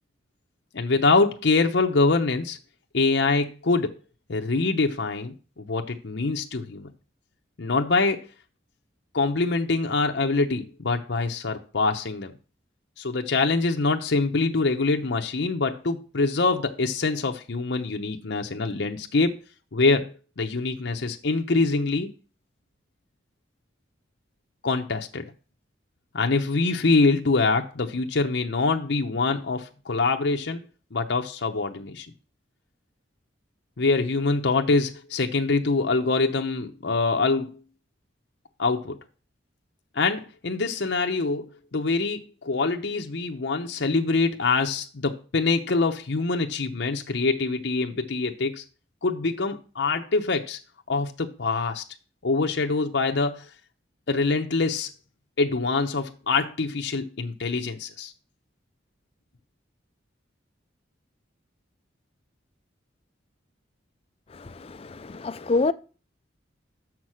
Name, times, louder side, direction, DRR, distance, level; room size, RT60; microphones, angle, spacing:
voice 1, 0.7-2.6 2.9-4.0 4.3-6.9 7.6-8.2 9.1-12.3 13.0-19.3 19.7-22.1 24.6-25.2 26.1-30.6 30.9-32.1 33.8-37.6 38.6-39.0 39.9-41.4 41.7-48.6 49.0-50.6 50.9-51.8 52.2-53.5 54.1-54.9 55.4-58.1, left 3 dB, 70° left, 0.8 m, -24 dB
voice 2, 64.3-65.7, left 3 dB, 30° left, 0.4 m, -27 dB
6.5 x 6.0 x 6.2 m
head